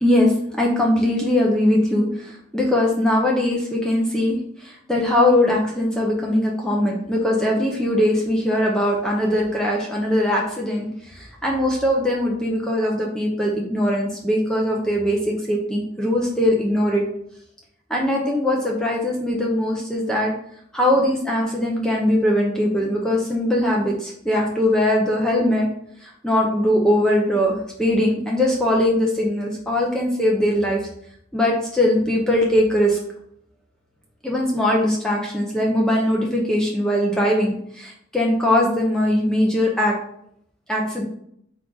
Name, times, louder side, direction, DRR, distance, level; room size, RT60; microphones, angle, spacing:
voice 1, 0.0-17.0 17.9-20.3 20.7-25.7 26.0-30.8 31.3-33.0 34.2-39.9 40.7-41.0, left 1 dB, 5° left, -2 dB, 0.5 m, -21 dB
3.8 x 2.4 x 4.6 m, 0.71 s
head